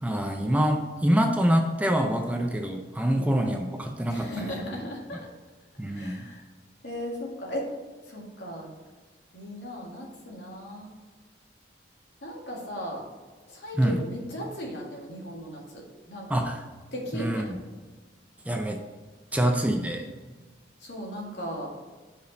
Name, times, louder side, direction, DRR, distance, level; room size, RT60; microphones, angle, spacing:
voice 1, 0.0-4.5 5.8-6.2 13.8-14.0 16.3-16.6 17.1-17.6 18.5-18.8 19.3-20.1, equal, 10° right, 4 dB, 0.5 m, -25 dB
voice 2, 4.1-5.3 5.9-6.4 6.8-7.7 8.1-8.7 9.3-10.9 12.2-13.1 13.5-16.4 16.9-17.6 20.8-21.7, equal, 75° left, -2 dB, 2.0 m, -37 dB
5.3 x 5.1 x 6.5 m, 1.3 s
head